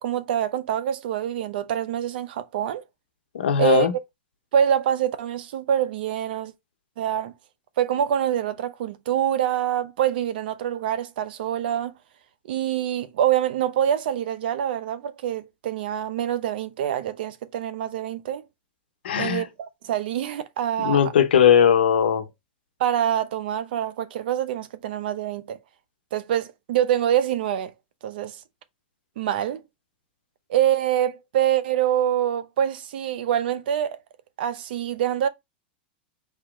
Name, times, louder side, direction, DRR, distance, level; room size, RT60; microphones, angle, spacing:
voice 1, 0.0-2.8 3.6-3.9 4.5-6.5 7.0-7.3 7.8-11.9 12.5-18.4 19.2-21.0 22.8-25.6 26.1-27.7 28.0-28.4 29.2-29.6 30.5-34.0 34.4-35.3, right 10 dB, 70° right, 0.8 m, -25 dB
voice 2, 3.3-3.9 19.0-19.4 20.8-22.3, left 8 dB, 85° left, 1.0 m, -19 dB
4.3 x 3.0 x 3.7 m
hypercardioid pair, 135°, 5 cm